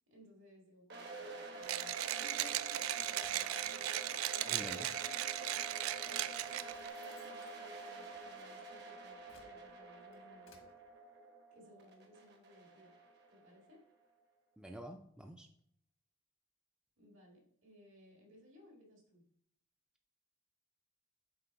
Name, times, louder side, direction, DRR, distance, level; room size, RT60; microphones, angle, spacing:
voice 1, 0.1-5.7 6.0-10.7 11.5-12.9 13.3-13.8 17.0-19.2, left 1 dB, 70° right, 0 dB, 2.2 m, -61 dB
sound 1, 0.9-13.8, right 2 dB, 55° right, 1.1 m, -48 dB
Mechanisms, 1.6-6.9, right 13 dB, 90° right, 0.3 m, -37 dB
sound 2, 1.9-3.8 4.2-5.0 5.9-6.0 6.4-8.6 9.0-10.7, left 4 dB, 85° left, 1.3 m, -65 dB
voice 2, 4.4-4.9 14.6-15.5, right 1 dB, 5° right, 4 dB, 0.4 m, -48 dB
7.8 x 3.4 x 4.6 m, 0.63 s
head